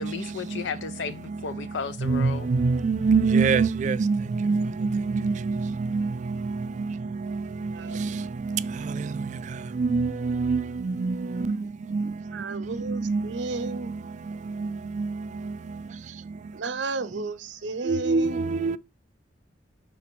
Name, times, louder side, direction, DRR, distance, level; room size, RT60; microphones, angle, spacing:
voice 1, 0.0-2.5, left 5 dB, 85° left, 0.4 m, -34 dB
voice 2, 2.0-9.3 9.7-11.6 11.9-12.1 12.5-13.3 14.5-15.5 17.9-18.8, right 4 dB, 40° right, 0.3 m, -26 dB
voice 3, 12.3-13.9 16.5-18.4, right 3 dB, 85° right, 0.7 m, -33 dB
6.0 x 3.9 x 4.4 m
head